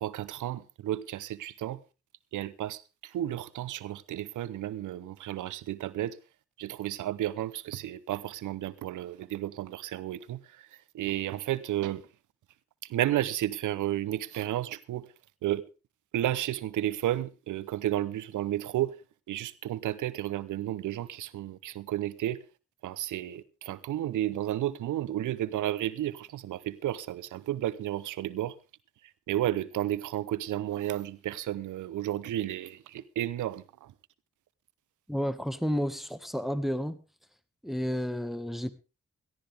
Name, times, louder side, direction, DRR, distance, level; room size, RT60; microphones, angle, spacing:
voice 1, 0.0-1.8 2.3-6.2 6.6-10.7 10.9-12.0 12.8-15.1 15.4-15.6 16.1-18.9 19.3-22.4 22.8-28.5 29.3-33.9, right 13 dB, 90° right, 0.8 m, -32 dB
voice 2, 35.1-37.0 37.6-38.7, equal, ahead, 1.6 m, -31 dB
18.0 x 13.5 x 3.5 m
supercardioid pair, 40°, 30 cm